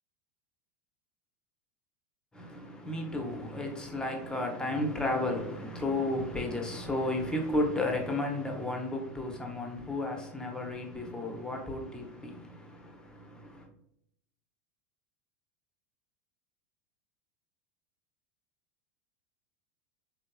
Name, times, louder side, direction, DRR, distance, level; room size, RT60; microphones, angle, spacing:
voice 1, 2.3-13.7, left 2 dB, 10° left, 0.7 m, -33 dB
3.6 x 2.8 x 2.2 m
hypercardioid pair, 105°, 9 cm